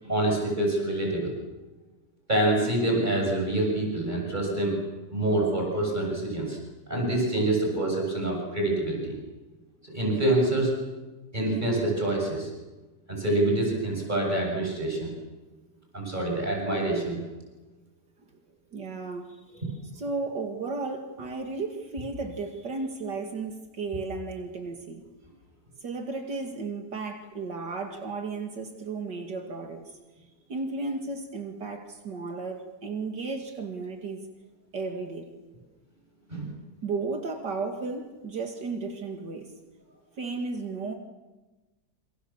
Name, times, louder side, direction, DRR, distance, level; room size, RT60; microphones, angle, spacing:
voice 1, 0.0-1.3 2.3-4.8 5.1-6.6 6.9-9.1 9.8-10.7 11.3-12.5 13.1-15.1 15.9-17.2 36.3-36.5, right 1 dB, 25° right, -1 dB, 7.3 m, -26 dB
voice 2, 18.7-19.6 19.9-25.0 25.8-30.0 30.5-34.3 34.7-35.3 36.8-39.5 40.2-40.9, right 3 dB, 80° right, 4 dB, 2.8 m, -34 dB
28.5 x 27.5 x 7.3 m, 1.2 s
omnidirectional pair, 1.9 m